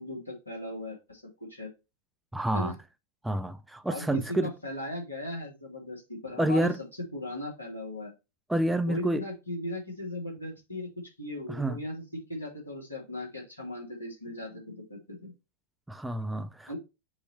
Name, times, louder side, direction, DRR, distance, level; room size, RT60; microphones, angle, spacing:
voice 1, 0.0-1.7 2.5-2.7 3.9-6.7 7.1-8.1 8.9-10.9 11.2-12.0 12.3-15.3 16.7-16.8, left 1 dB, 85° left, 2.6 m, -37 dB
voice 2, 2.3-2.7 3.2-4.5 6.4-6.8 8.5-9.2 11.5-11.8 15.9-16.7, right 1 dB, 5° right, 0.5 m, -28 dB
7.6 x 3.0 x 4.5 m
figure-of-eight pair, 90°, 0 cm